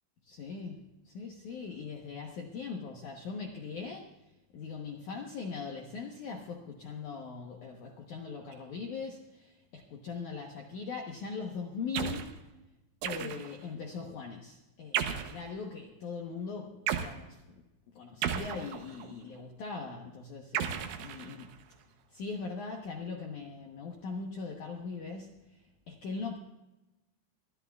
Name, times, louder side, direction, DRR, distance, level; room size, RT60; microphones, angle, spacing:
voice 1, 0.2-0.8 1.1-4.2 4.5-12.4 13.0-17.4 17.9-21.5 22.1-25.6 25.9-26.4, left 5 dB, 85° left, 1 dB, 1.7 m, -40 dB
sound 1, 11.9-12.3 13.0-13.6 14.9-15.4 16.9-17.2 18.2-19.1 20.5-21.6, right 9 dB, 85° right, 3.4 m, -34 dB
25.0 x 12.5 x 2.4 m, 0.99 s
omnidirectional pair, 5.3 m